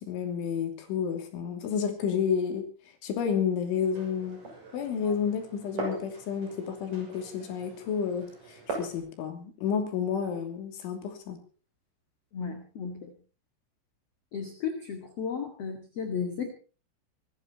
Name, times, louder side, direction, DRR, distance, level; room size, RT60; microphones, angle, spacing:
voice 1, 0.0-2.6 3.0-4.4 4.7-11.4, left 7 dB, 70° left, 6 dB, 5.3 m, -30 dB
Glass, 3.8-9.0, right 2 dB, 40° right, 7.9 m, -41 dB
voice 2, 12.3-13.1 14.3-16.5, left 6 dB, 50° left, 5 dB, 2.0 m, -34 dB
26.5 x 11.5 x 4.2 m, 0.37 s
omnidirectional pair, 5.8 m